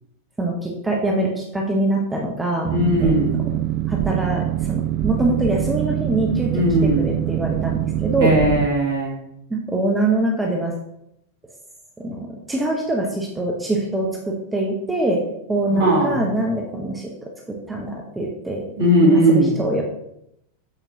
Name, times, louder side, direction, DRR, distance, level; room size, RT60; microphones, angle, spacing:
voice 1, 0.4-2.7 3.0-3.1 3.9-8.4 9.5-10.7 12.0-15.2 15.5-18.6 19.0-19.8, right 2 dB, 10° right, -1 dB, 0.8 m, -24 dB
Boat Water vehicle, 2.6-8.7, right 12 dB, 35° right, 0.3 m, -24 dB
voice 2, 2.7-3.5 6.5-7.1 8.2-9.1 15.7-16.2 18.8-19.5, equal, 55° right, -3 dB, 2.3 m, -18 dB
7.7 x 4.5 x 2.8 m, 0.80 s
figure-of-eight pair, 90°, 0 cm